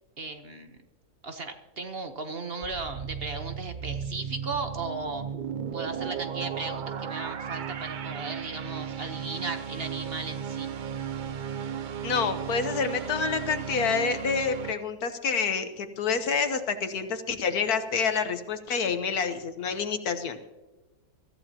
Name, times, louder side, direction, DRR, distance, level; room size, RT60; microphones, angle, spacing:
voice 1, 0.2-0.8 1.2-5.2 5.7-10.7, right 3 dB, 45° right, 7 dB, 1.1 m, -36 dB
sound 1, 2.6-14.7, right 7 dB, 90° right, 0.4 m, -35 dB
voice 2, 12.0-20.4, left 5 dB, 80° left, 9 dB, 1.6 m, -28 dB
23.5 x 14.0 x 2.9 m, 1.1 s
omnidirectional pair, 1.6 m